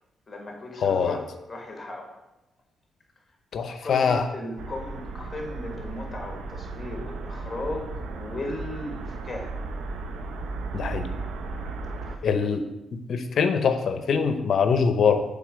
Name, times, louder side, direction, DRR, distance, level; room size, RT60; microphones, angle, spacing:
voice 1, 0.3-2.2 3.8-9.5 12.1-12.2, left 2 dB, 20° left, 1 dB, 1.7 m, -36 dB
voice 2, 0.8-1.2 3.5-4.3 10.7-11.1 12.2-12.7 12.9-15.2, left 6 dB, 55° left, 9 dB, 0.7 m, -23 dB
sound 1, 4.6-12.2, right 3 dB, 75° right, 0.8 m, -35 dB
7.2 x 3.8 x 6.4 m, 0.94 s
cardioid pair, 125°, 0 cm